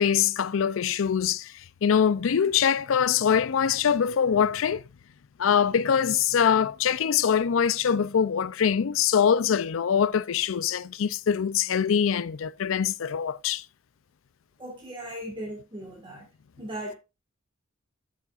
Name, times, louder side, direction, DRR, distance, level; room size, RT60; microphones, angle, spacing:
voice 1, 0.0-1.5 1.8-4.8 5.4-13.6, left 7 dB, 80° left, 0.4 m, -23 dB
voice 2, 14.6-16.3 16.6-17.0, right 1 dB, 25° right, 1.7 m, -37 dB
12.5 x 7.3 x 2.4 m
head